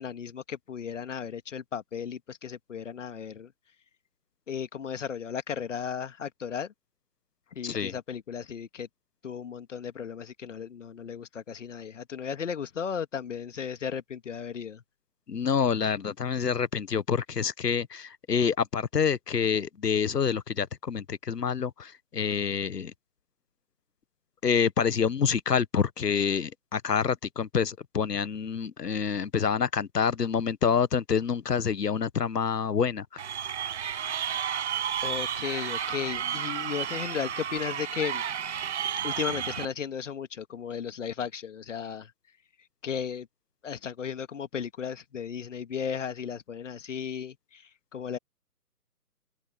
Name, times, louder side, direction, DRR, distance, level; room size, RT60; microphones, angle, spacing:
voice 1, 0.0-3.5 4.5-6.7 7.5-8.9 9.2-14.8 35.0-38.2 39.0-42.1 42.8-43.3 43.6-48.2, left 7 dB, 50° left, 2.0 m, -35 dB
voice 2, 7.6-7.9 15.3-22.9 24.4-33.0, left 6 dB, 80° left, 1.3 m, -27 dB
Crowd, 33.2-39.6, right 8 dB, 45° right, 6.4 m, -32 dB
open air
figure-of-eight pair, 155°, 47 cm